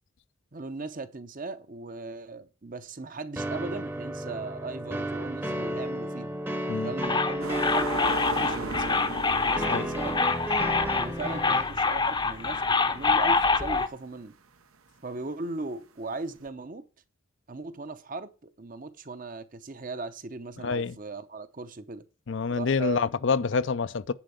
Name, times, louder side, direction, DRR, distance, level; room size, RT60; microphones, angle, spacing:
voice 1, 0.5-6.4 6.8-9.1 9.4-10.2 10.9-14.3 15.0-16.8 17.5-22.0 22.5-23.0, right 3 dB, 40° right, 0.8 m, -38 dB
sound 1, 3.4-11.6, right 1 dB, 10° right, 0.8 m, -33 dB
sound 2, 7.0-13.9, left 4 dB, 20° left, 0.7 m, -26 dB
sound 3, 7.4-12.9 13.3-13.4 16.5-16.6, right 4 dB, 85° right, 1.1 m, -38 dB
voice 2, 20.6-20.9 22.3-24.1, left 5 dB, 60° left, 0.5 m, -27 dB
10.5 x 4.6 x 7.8 m
head